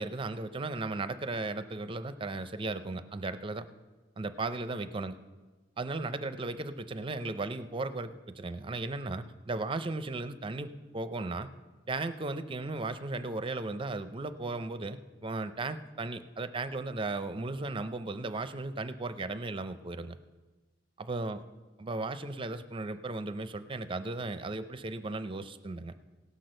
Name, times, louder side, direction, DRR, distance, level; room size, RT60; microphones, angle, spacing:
voice 1, 0.0-3.7 4.2-5.1 5.8-11.5 11.9-20.2 21.0-21.4 21.8-25.9, right 2 dB, 30° right, 11 dB, 0.5 m, -36 dB
17.0 x 6.1 x 6.5 m, 1.3 s
head